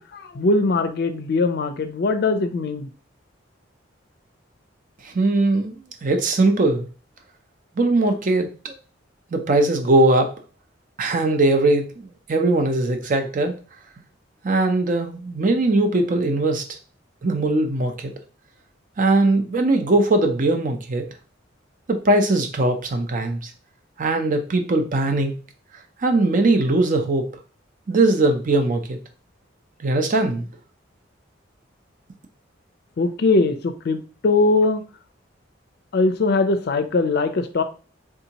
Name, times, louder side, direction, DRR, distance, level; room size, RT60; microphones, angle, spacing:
voice 1, 0.0-2.9 33.0-34.8 35.9-37.6, left 3 dB, 55° left, 9 dB, 0.4 m, -21 dB
voice 2, 5.0-6.9 7.8-8.7 9.3-10.3 11.0-13.6 14.4-16.6 17.2-18.1 19.0-21.1 21.9-23.5 24.0-25.3 26.0-27.3 27.9-29.0 29.8-30.5, right 2 dB, 45° right, 6 dB, 0.6 m, -20 dB
3.6 x 2.7 x 2.9 m, 0.36 s
head